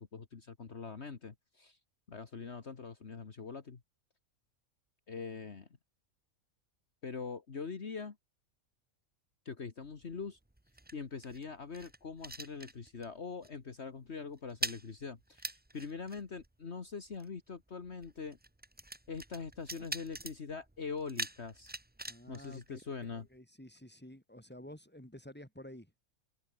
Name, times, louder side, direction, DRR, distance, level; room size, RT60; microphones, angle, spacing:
voice 1, 0.0-1.8 2.1-3.8 5.1-5.7 7.0-8.2 9.5-10.4 10.9-18.4 19.1-21.7 22.3-23.3, left 5 dB, 55° left, 1.9 m, -43 dB
sound 1, 9.8-13.2 13.4-13.7 14.0-23.4, right 1 dB, 10° right, 0.7 m, -45 dB
voice 2, 22.1-25.9, left 1 dB, 5° left, 4.4 m, -51 dB
omnidirectional pair, 1.4 m